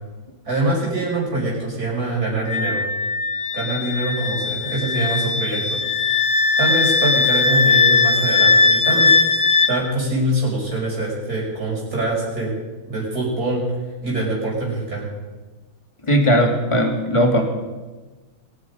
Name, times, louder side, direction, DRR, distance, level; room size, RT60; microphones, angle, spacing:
voice 1, 0.4-2.8 3.5-5.8 6.6-9.1 9.7-12.5 12.9-13.6 14.0-15.1, right 1 dB, 45° right, -4 dB, 6.1 m, -24 dB
Wind instrument woodwind instrument, 2.5-9.7, left 4 dB, 70° left, 0.4 m, -19 dB
voice 2, 16.1-17.4, equal, 15° left, 2 dB, 2.1 m, -17 dB
23.5 x 9.7 x 5.4 m, 1.2 s
omnidirectional pair, 2.3 m